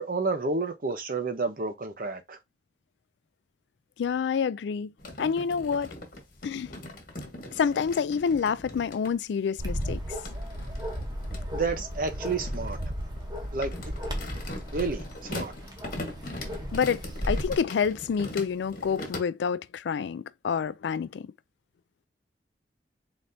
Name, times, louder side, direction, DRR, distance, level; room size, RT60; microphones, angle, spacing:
voice 1, 0.0-2.4 11.5-12.8 13.5-13.7 14.7-15.0 15.3-15.5, right 3 dB, 50° right, 0.7 m, -30 dB
voice 2, 4.0-4.9 5.2-5.9 6.4-6.7 7.5-10.2 16.7-21.3, left 6 dB, 75° left, 0.3 m, -28 dB
sound 1, 5.0-9.1 9.8-19.2, left 2 dB, 50° left, 1.4 m, -41 dB
Bark, 9.6-17.6, equal, 20° right, 0.9 m, -35 dB
4.1 x 3.3 x 2.7 m
head